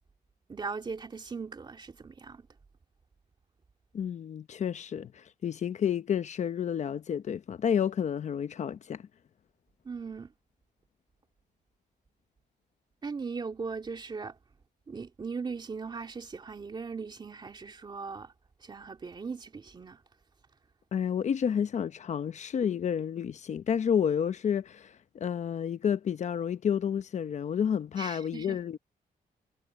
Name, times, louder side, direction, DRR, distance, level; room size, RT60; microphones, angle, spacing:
voice 1, 0.5-2.5 9.8-10.3 13.0-14.4 14.9-18.3 18.6-20.0 28.0-28.6, right 5 dB, 30° right, 2.5 m, -39 dB
voice 2, 3.9-9.0 20.9-28.8, left 8 dB, 50° left, 0.9 m, -30 dB
wide cardioid pair, 150°, 16 cm